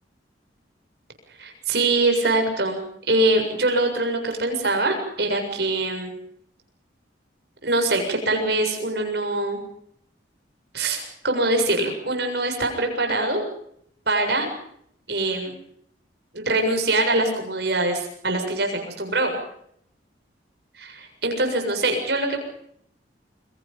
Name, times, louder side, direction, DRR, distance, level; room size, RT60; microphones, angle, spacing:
voice 1, 1.4-6.1 7.6-9.6 10.7-13.4 14.1-14.5 15.1-15.6 16.3-19.3 20.8-22.4, right 2 dB, 60° right, 5 dB, 7.3 m, -23 dB
29.0 x 23.0 x 5.5 m, 0.68 s
head